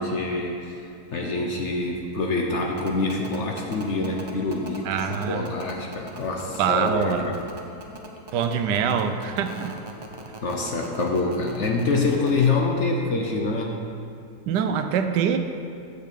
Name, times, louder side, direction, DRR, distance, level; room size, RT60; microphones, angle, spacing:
voice 1, 0.0-7.4 10.4-13.8, left 3 dB, 55° left, 1 dB, 0.9 m, -26 dB
sound 1, 2.8-12.5, right 2 dB, 40° right, 0.3 m, -39 dB
voice 2, 4.8-5.5 6.6-7.3 8.3-9.8 14.5-15.4, right 7 dB, 85° right, 8 dB, 1.2 m, -24 dB
7.5 x 6.6 x 6.7 m, 2.5 s
omnidirectional pair, 1.8 m